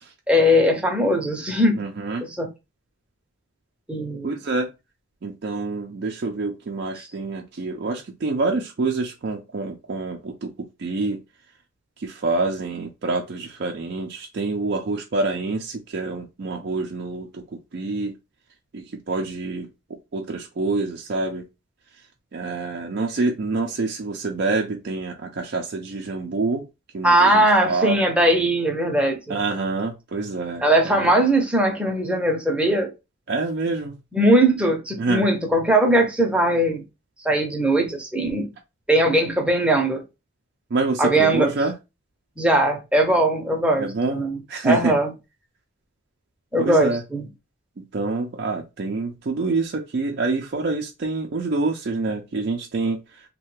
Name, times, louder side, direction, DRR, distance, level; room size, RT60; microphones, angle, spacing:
voice 1, 0.3-1.8 2.2-2.5 3.9-4.4 7.0-7.1 27.0-29.4 30.6-32.9 34.1-36.8 37.2-38.5 38.9-40.0 41.0-41.5 42.4-44.4 44.6-45.1 46.5-47.2, right 1 dB, 5° right, 0.6 m, -20 dB
voice 2, 1.8-2.2 4.2-4.7 5.2-11.2 12.0-17.4 17.7-18.1 18.7-19.7 20.1-21.5 22.3-26.7 26.9-28.0 29.3-31.1 33.3-34.0 35.0-35.3 40.7-41.7 43.8-44.2 44.5-45.0 46.6-47.0 47.8-53.2, right 3 dB, 55° right, 0.4 m, -26 dB
3.2 x 2.2 x 3.1 m
head